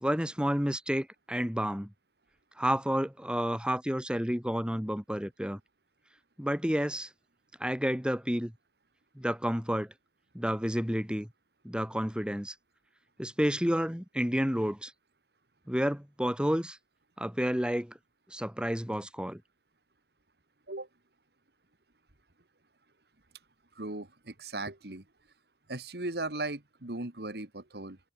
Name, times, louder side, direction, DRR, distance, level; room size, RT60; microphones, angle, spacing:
voice 1, 0.0-1.9 2.6-5.6 6.4-7.1 7.6-8.5 9.2-9.9 10.3-11.3 11.6-12.5 13.2-14.9 15.7-16.8 17.2-17.9 18.3-19.4, equal, 5° right, 3.1 m, -30 dB
voice 2, 23.8-25.0 25.7-28.0, right 2 dB, 60° right, 2.1 m, -37 dB
head